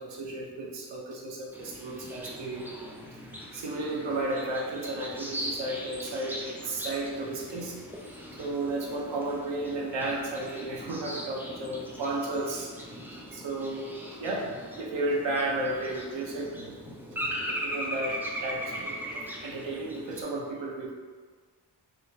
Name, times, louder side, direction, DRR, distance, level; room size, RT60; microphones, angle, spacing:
voice 1, 0.0-2.7 3.5-7.8 8.4-12.7 13.3-13.8 14.2-16.8 17.1-20.9, right 2 dB, 85° right, -2 dB, 0.8 m, -33 dB
sound 1, 1.5-20.2, equal, 5° right, 0.5 m, -39 dB
voice 2, 1.9-2.3 3.0-3.5 7.2-7.4 12.9-13.3 16.8-17.2 19.1-19.2, left 1 dB, 30° right, -3 dB, 0.8 m, -52 dB
5.7 x 2.2 x 3.1 m, 1.5 s
wide cardioid pair, 100°, 42 cm